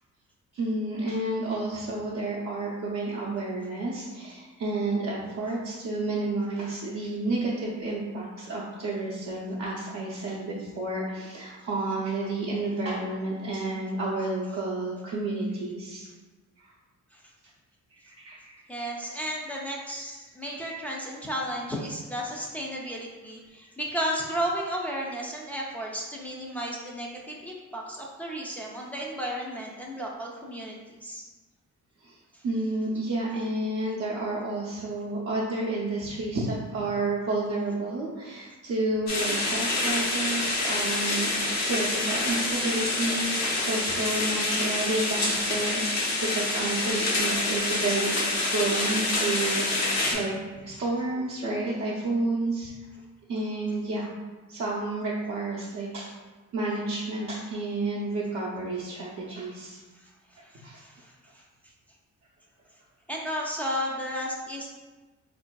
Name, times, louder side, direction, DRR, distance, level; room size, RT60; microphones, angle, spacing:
voice 1, 0.5-16.1 16.6-16.7 18.0-18.6 20.4-20.5 32.0-41.3 41.7-48.1 48.5-52.7 53.3-54.1 54.5-56.1 56.5-59.8 60.4-60.8, right 2 dB, 60° right, -6 dB, 0.6 m, -30 dB
voice 2, 18.7-31.2 32.3-32.4 50.1-50.2 59.9-61.4 63.1-64.7, equal, 5° left, -3 dB, 0.4 m, -34 dB
sound 1, 39.1-50.1, left 2 dB, 60° left, 0.7 m, -27 dB
4.3 x 2.5 x 2.2 m, 1.2 s
wide cardioid pair, 145°, 31 cm